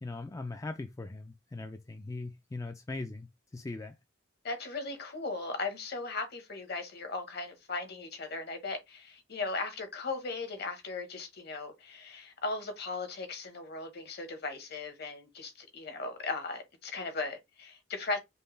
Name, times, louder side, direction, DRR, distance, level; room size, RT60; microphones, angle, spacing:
voice 1, 0.0-3.3 3.5-3.9, left 2 dB, 15° left, 0.3 m, -40 dB
voice 2, 4.4-18.2, left 3 dB, 55° left, 1.2 m, -37 dB
5.4 x 2.2 x 3.2 m
head